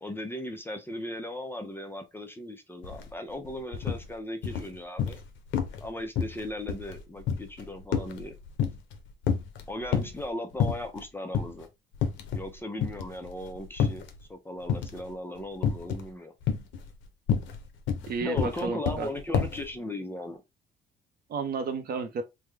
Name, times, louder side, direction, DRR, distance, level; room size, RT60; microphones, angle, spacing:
voice 1, 0.0-5.2 5.8-8.3 9.7-11.7 12.3-14.0 14.3-16.3 18.2-20.4, left 1 dB, 10° left, 0.5 m, -37 dB
sound 1, 2.8-3.0 3.3-4.0 4.4-5.3 5.5-5.9 6.2-9.0 9.2-10.2 10.6-11.0 11.3-11.5 11.9-12.5 12.8-14.2 14.7-15.1 15.6-16.1 16.4-19.6, left 7 dB, 80° left, 0.6 m, -29 dB
voice 2, 18.0-19.1 21.3-22.2, right 5 dB, 55° right, 0.7 m, -32 dB
3.4 x 2.1 x 3.3 m
cardioid pair, 130°, 19 cm